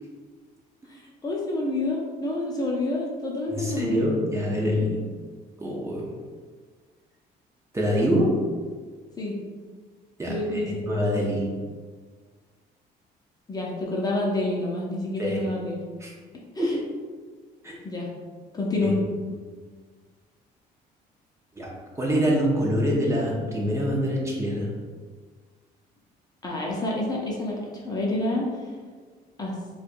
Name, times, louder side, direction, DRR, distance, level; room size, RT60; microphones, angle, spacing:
voice 1, 0.9-4.0 9.2-9.4 10.3-10.9 13.5-15.8 16.5-16.8 17.8-18.1 18.5-19.0 26.4-28.7 29.4-29.5, left 2 dB, 25° left, -3 dB, 0.6 m, -28 dB
voice 2, 3.5-5.0 5.6-6.2 7.7-8.4 10.2-11.6 15.2-15.4 16.0-16.1 16.6-16.8 17.6-17.7 18.8-18.9 21.6-21.7 22.0-24.7, equal, 15° right, -3 dB, 0.7 m, -25 dB
4.4 x 2.3 x 2.5 m, 1.5 s
cardioid pair, 110°, 17 cm